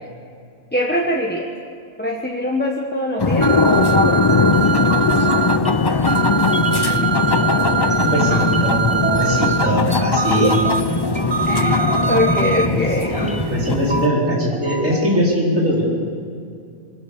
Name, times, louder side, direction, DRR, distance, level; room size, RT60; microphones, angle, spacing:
voice 1, 0.7-1.5 2.0-4.2 8.3-8.4 10.4-10.5 11.5-11.8 12.1-13.2, left 1 dB, 10° left, -1 dB, 1.3 m, -22 dB
sound 1, 3.2-14.1, left 4 dB, 35° left, 0.4 m, -19 dB
sound 2, 3.4-5.6 6.1-9.7 10.2-10.8 11.3-12.7, right 6 dB, 45° right, 0.3 m, -22 dB
sound 3, 4.3-15.2, right 1 dB, 5° right, 0.7 m, -30 dB
voice 2, 8.0-10.6 13.1-15.8, right 1 dB, 90° right, -4 dB, 4.9 m, -21 dB
23.5 x 17.5 x 6.9 m, 2.4 s
omnidirectional pair, 1.3 m